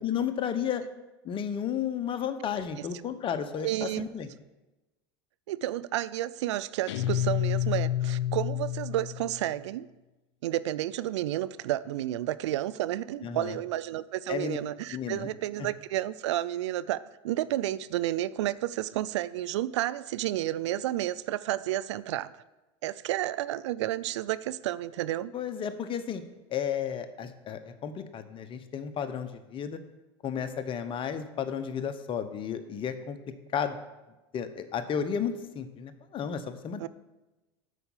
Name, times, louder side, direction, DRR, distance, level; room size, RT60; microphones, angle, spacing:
voice 1, 0.0-0.8 1.2-4.3 13.2-13.6 14.3-14.6 14.9-15.3 15.6-15.7 25.3-26.2 26.5-29.8 30.2-33.2 33.5-33.8 34.3-36.9, left 8 dB, 35° left, 10 dB, 1.0 m, -33 dB
voice 2, 3.6-4.1 5.5-9.9 10.4-22.3 22.8-25.3 36.8-36.9, right 14 dB, 80° right, 18 dB, 0.4 m, -31 dB
Guitar, 6.9-9.5, left 12 dB, 85° left, 0.5 m, -29 dB
8.2 x 5.8 x 7.3 m, 1.1 s
hypercardioid pair, 100°, 15 cm